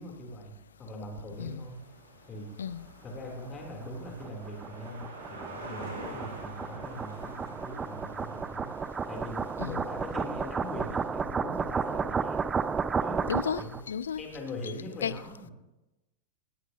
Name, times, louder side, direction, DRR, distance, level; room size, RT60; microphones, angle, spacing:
voice 1, 0.0-1.8 2.3-2.5 3.0-8.7 9.1-12.6 13.0-13.2 13.6-13.8 14.2-15.5, left 1 dB, 25° left, 3.2 m, -41 dB
sound 1, 1.3-11.1, right 2 dB, 70° right, 5.9 m, -47 dB
sound 2, 3.8-13.8, right 5 dB, 15° right, 0.5 m, -33 dB
voice 2, 13.3-14.2 15.0-15.2, left 7 dB, 70° left, 0.5 m, -33 dB
18.5 x 18.0 x 2.8 m
figure-of-eight pair, 90°, 0 cm